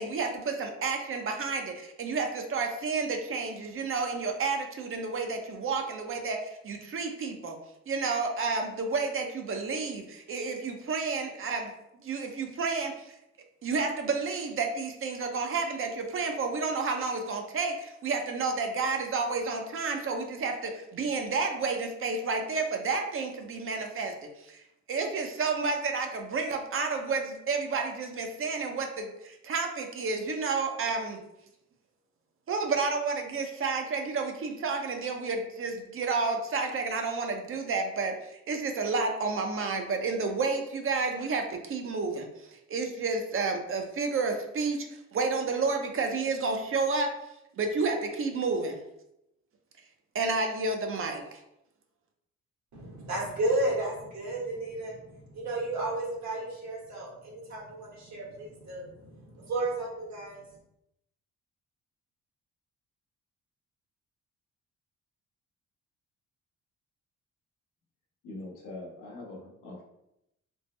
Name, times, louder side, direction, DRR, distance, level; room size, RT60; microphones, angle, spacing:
voice 1, 0.0-7.6 7.9-11.7 12.0-13.1 13.6-31.2 32.5-47.1 47.6-48.8 50.1-51.4, right 4 dB, 45° right, 4 dB, 0.6 m, -31 dB
voice 2, 52.7-60.4, right 2 dB, 65° right, -3 dB, 1.3 m, -33 dB
voice 3, 68.2-69.8, left 2 dB, 85° left, -1 dB, 1.0 m, -42 dB
3.4 x 2.0 x 3.1 m, 0.84 s
cardioid pair, 90°, 30 cm